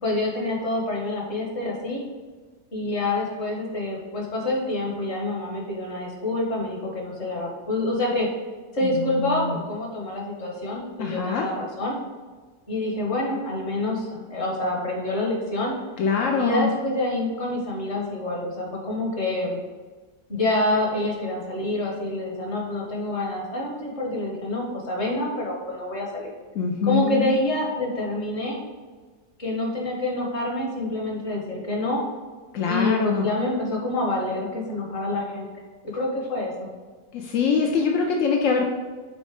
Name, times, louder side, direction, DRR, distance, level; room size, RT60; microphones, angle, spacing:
voice 1, 0.0-2.1 2.7-8.3 8.7-12.0 12.7-15.7 16.4-19.6 20.3-26.3 26.8-28.6 29.4-32.0 32.7-35.5 35.8-36.7, left 1 dB, 40° left, -1 dB, 1.8 m, -27 dB
voice 2, 8.8-9.6 11.0-11.5 16.0-16.7 26.5-27.3 32.5-33.3 37.1-38.7, left 5 dB, 65° left, 1 dB, 0.8 m, -24 dB
6.3 x 4.2 x 5.1 m, 1.4 s
omnidirectional pair, 1.8 m